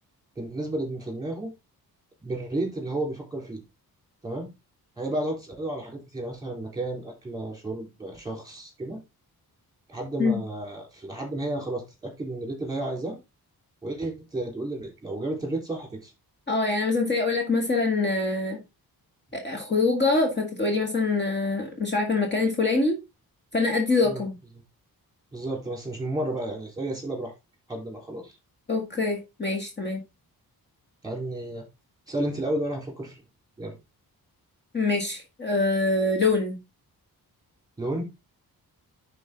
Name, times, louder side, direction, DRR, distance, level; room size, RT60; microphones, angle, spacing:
voice 1, 0.4-1.5 2.2-3.6 4.2-4.5 5.0-9.0 9.9-13.2 13.8-16.1 24.0-24.2 25.3-27.3 27.7-28.3 31.0-31.6 32.1-33.2 33.6-33.7 37.8-38.0, right 1 dB, 10° right, 1 dB, 4.0 m, -32 dB
voice 2, 16.5-18.6 19.3-23.0 23.5-24.4 28.7-30.0 34.7-36.6, left 3 dB, 30° left, 1 dB, 1.9 m, -24 dB
10.5 x 4.6 x 3.8 m, 0.25 s
wide cardioid pair, 140°, 37 cm